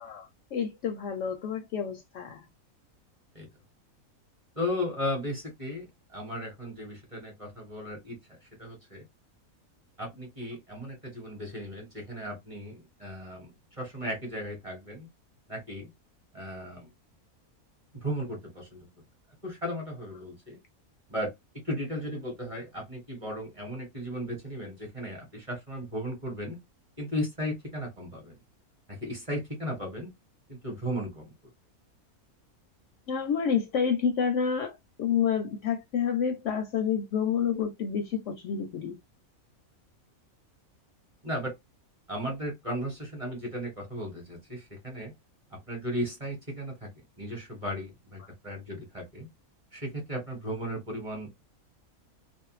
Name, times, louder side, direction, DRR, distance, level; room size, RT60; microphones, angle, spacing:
voice 1, 0.2-2.4 33.1-39.0, left 7 dB, 70° left, 0.8 m, -29 dB
voice 2, 4.6-9.0 10.0-13.5 13.8-15.1 15.5-15.9 16.3-16.9 17.9-18.9 19.4-20.6 21.1-21.3 21.6-26.6 27.0-28.4 28.9-30.1 30.5-31.3 41.2-41.5 42.1-45.1 45.5-46.9 47.2-49.3 49.7-51.3, equal, 25° right, 1.0 m, -36 dB
2.5 x 2.1 x 3.0 m
omnidirectional pair, 1.5 m